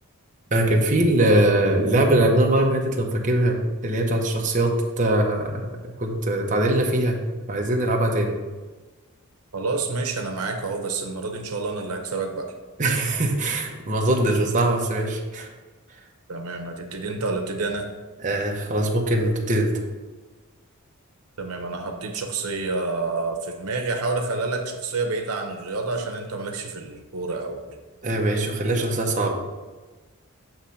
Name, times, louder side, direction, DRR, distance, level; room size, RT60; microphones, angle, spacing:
voice 1, 0.5-5.6 6.0-7.2 7.5-8.4 12.8-15.5 18.2-19.7 28.0-29.3, right 1 dB, 35° right, 0 dB, 0.8 m, -22 dB
voice 2, 9.5-12.5 16.3-17.9 21.4-27.8, right 3 dB, 90° right, 4 dB, 0.8 m, -28 dB
7.1 x 3.1 x 5.6 m, 1.3 s
head